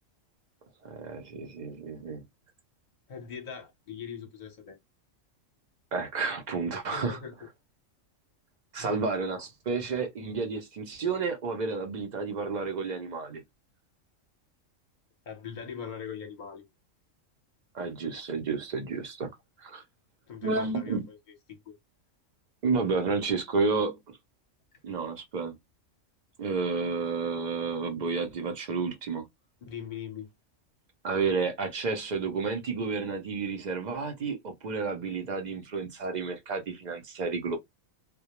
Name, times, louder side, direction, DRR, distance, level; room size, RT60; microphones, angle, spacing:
voice 1, 0.8-2.2 5.9-7.2 8.7-13.4 17.7-19.3 19.6-19.8 20.4-21.1 22.6-24.2 24.8-25.6 26.4-29.3 31.0-37.6, right 4 dB, 55° right, 0.5 m, -31 dB
voice 2, 3.1-4.8 6.9-7.3 8.8-9.0 15.3-16.6 20.3-21.2 21.5-21.7 29.7-30.3, left 7 dB, 45° left, 0.7 m, -41 dB
2.2 x 2.1 x 2.8 m
omnidirectional pair, 1.4 m